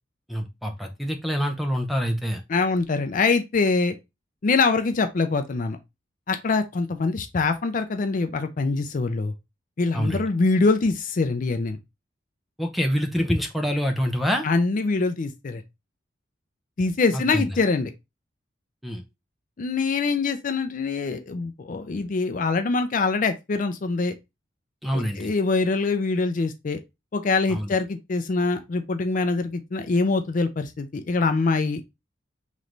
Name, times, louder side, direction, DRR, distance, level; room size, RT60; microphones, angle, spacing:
voice 1, 0.3-2.4 9.9-10.2 12.6-14.5 17.1-17.6 18.8-19.0 24.8-25.3 27.5-27.7, equal, ahead, 0.6 m, -26 dB
voice 2, 2.5-4.0 4.4-5.8 6.3-9.3 9.8-11.8 14.4-15.6 16.8-17.9 19.6-24.1 24.9-26.8 27.1-31.8, left 3 dB, 45° left, 0.4 m, -24 dB
3.2 x 3.1 x 3.8 m
head